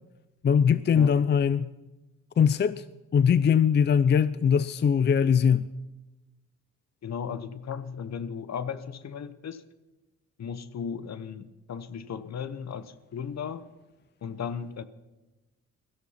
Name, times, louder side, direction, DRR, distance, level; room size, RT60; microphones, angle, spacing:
voice 1, 0.4-1.7 2.4-2.8 3.1-5.7, left 7 dB, 35° left, 0.5 m, -21 dB
voice 2, 7.0-9.6 10.4-13.6 14.2-14.8, left 7 dB, 55° left, 1.0 m, -36 dB
16.5 x 13.0 x 5.8 m
cardioid pair, 65°, 31 cm